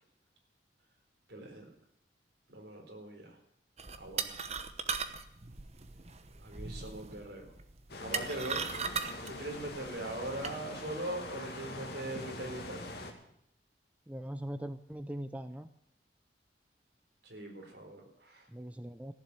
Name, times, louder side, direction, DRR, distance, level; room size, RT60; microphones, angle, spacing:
voice 1, 1.3-1.7 2.5-3.4 4.0-4.4 6.4-7.5 8.0-8.7 9.2-12.8 17.2-18.5, right 1 dB, 70° right, 2 dB, 4.1 m, -41 dB
sound 1, 3.8-10.5, right 5 dB, 35° right, 1.0 m, -39 dB
sound 2, 7.9-13.1, left 2 dB, 60° left, 2.4 m, -43 dB
voice 2, 14.1-15.7 18.5-19.1, right 1 dB, 10° right, 9 dB, 0.5 m, -41 dB
15.5 x 7.4 x 10.0 m, 0.74 s
head